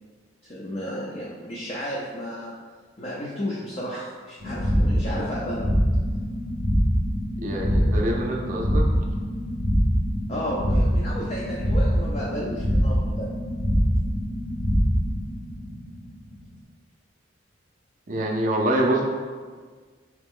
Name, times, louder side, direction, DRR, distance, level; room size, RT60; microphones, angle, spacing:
voice 1, 0.4-2.5 3.0-5.7 10.3-13.3, equal, 35° left, -5 dB, 0.5 m, -33 dB
sound 1, 4.4-16.2, equal, 50° left, 1.1 m, -24 dB
voice 2, 7.4-8.9 18.1-19.0, right 1 dB, 45° right, -1 dB, 0.5 m, -25 dB
4.0 x 3.0 x 3.6 m, 1.5 s
head